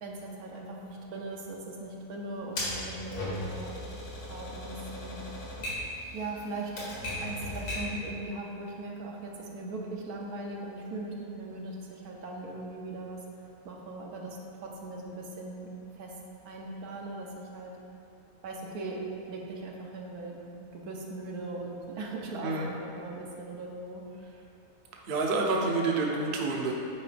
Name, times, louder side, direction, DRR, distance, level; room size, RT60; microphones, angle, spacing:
voice 1, 0.0-3.8 4.3-5.2 6.1-13.2 13.6-15.7 15.9-16.1 16.4-17.7 18.4-24.3, right 2 dB, 75° right, -1 dB, 1.3 m, -39 dB
Typewriter, 2.6-8.0, left 1 dB, 75° left, 2.1 m, -37 dB
voice 2, 25.1-26.7, right 3 dB, 50° right, -1 dB, 0.8 m, -28 dB
8.6 x 4.8 x 3.4 m, 2.6 s
omnidirectional pair, 1.7 m